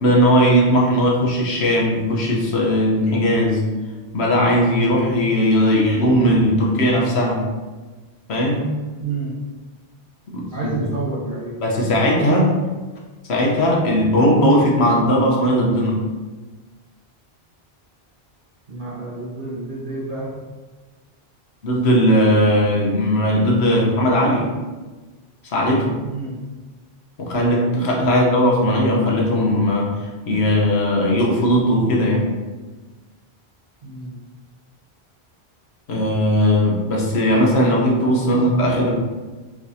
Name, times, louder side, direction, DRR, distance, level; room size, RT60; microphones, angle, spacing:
voice 1, 0.0-3.6 4.1-7.4 8.3-8.7 10.3-10.5 10.8-10.9 11.6-12.5 13.3-16.0 21.6-24.5 25.4-25.9 27.2-32.3 35.9-38.9, equal, 85° left, -2 dB, 1.2 m, -18 dB
voice 2, 9.0-9.4 10.5-11.5 12.1-12.5 18.7-20.3 26.0-26.4 28.1-28.3 33.8-34.1 38.3-38.4, right 3 dB, 55° right, -6 dB, 1.0 m, -29 dB
4.6 x 3.5 x 2.7 m, 1.3 s
omnidirectional pair, 1.1 m